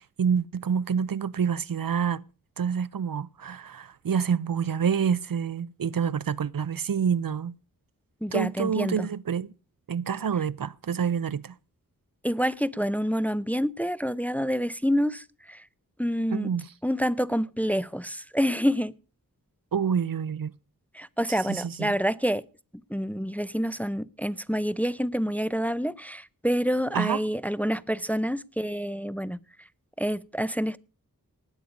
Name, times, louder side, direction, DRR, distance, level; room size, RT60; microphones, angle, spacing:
voice 1, 0.0-2.2 2.6-7.5 8.3-9.5 9.9-11.6 16.3-16.7 19.7-20.5 21.3-21.9 26.9-27.2, right 7 dB, 70° right, 0.6 m, -27 dB
voice 2, 8.2-9.1 12.2-15.6 16.0-16.5 16.8-18.9 20.9-22.4 22.9-29.4 30.0-30.8, equal, 5° left, 0.6 m, -27 dB
19.0 x 8.5 x 5.1 m
wide cardioid pair, 70°, 35 cm